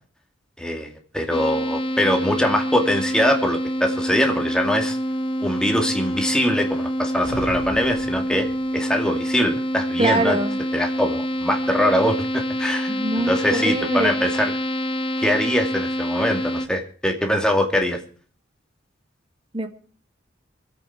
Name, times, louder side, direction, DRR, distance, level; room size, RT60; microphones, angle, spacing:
voice 1, 0.6-5.0 5.4-8.5 8.7-10.4 10.7-12.9 13.2-14.5 15.2-18.0, left 1 dB, 5° left, 2 dB, 2.4 m, -22 dB
sound 1, 1.3-16.7, equal, 25° left, 0.8 m, -26 dB
sound 2, 7.2-8.9, equal, 80° right, 4.7 m, -37 dB
voice 2, 10.0-10.6 12.9-14.3 19.5-19.7, right 2 dB, 30° right, 6 dB, 1.9 m, -23 dB
25.5 x 8.6 x 4.4 m, 0.44 s
head